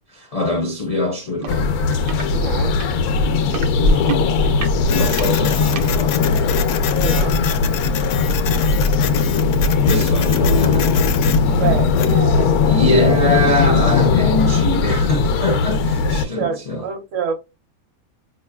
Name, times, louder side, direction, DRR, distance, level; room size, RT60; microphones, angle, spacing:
voice 1, 0.2-1.7 3.3-3.5 4.9-6.4 9.8-11.0 12.3-16.9, left 2 dB, 45° left, 0.4 m, -23 dB
sound 1, 1.4-1.6 1.9-2.3 2.8-5.9 6.6-6.7, right 2 dB, 90° right, 0.4 m, -24 dB
sound 2, 1.5-16.3, left 4 dB, 85° left, 1.2 m, -18 dB
voice 2, 2.3-2.8 7.0-7.4 11.5-12.5 16.2-17.3, right 6 dB, 60° right, 1.2 m, -26 dB
Printer, 4.9-12.2, left 9 dB, 65° left, 0.8 m, -29 dB
4.7 x 3.0 x 2.2 m
omnidirectional pair, 1.5 m